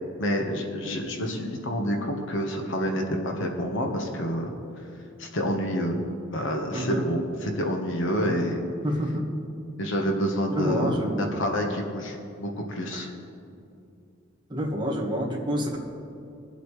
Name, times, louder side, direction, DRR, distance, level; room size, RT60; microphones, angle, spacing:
voice 1, 0.2-4.5 5.2-6.0 6.3-8.6 9.8-13.1, equal, 60° left, 2 dB, 1.3 m, -28 dB
voice 2, 6.7-7.0 8.2-8.3 8.8-9.3 10.5-11.3 12.9-13.0 14.5-15.8, equal, 20° right, -1 dB, 1.5 m, -28 dB
23.0 x 8.1 x 3.3 m, 2.6 s
head